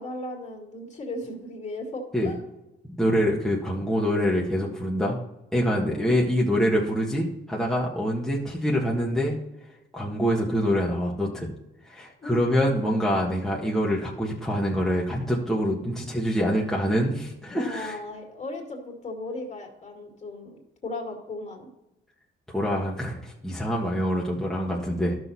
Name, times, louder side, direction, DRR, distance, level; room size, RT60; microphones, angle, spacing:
voice 1, 0.0-2.4 5.9-6.2 12.2-12.4 17.5-21.7, left 2 dB, 35° left, 1 dB, 2.5 m, -36 dB
voice 2, 3.0-5.2 5.5-9.4 9.9-11.5 11.8-18.0 22.5-25.2, equal, ahead, -4 dB, 1.6 m, -25 dB
12.0 x 6.3 x 4.2 m, 0.92 s
cardioid pair, 90°, 20 cm